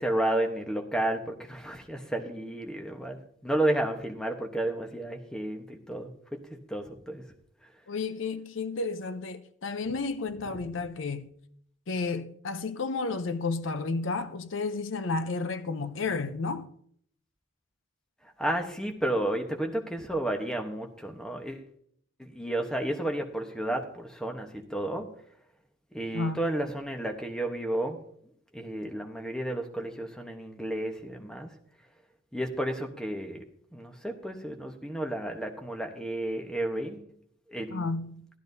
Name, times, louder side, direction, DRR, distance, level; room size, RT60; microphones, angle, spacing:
voice 1, 0.0-7.3 18.4-21.7 22.2-25.1 25.9-28.0 28.5-31.5 32.3-33.4 33.7-37.1 37.5-37.8, right 1 dB, 5° left, 1.0 m, -32 dB
voice 2, 7.9-11.3 11.9-16.7 26.1-26.4 37.7-38.3, left 3 dB, 75° left, 0.6 m, -32 dB
14.0 x 12.5 x 2.7 m
head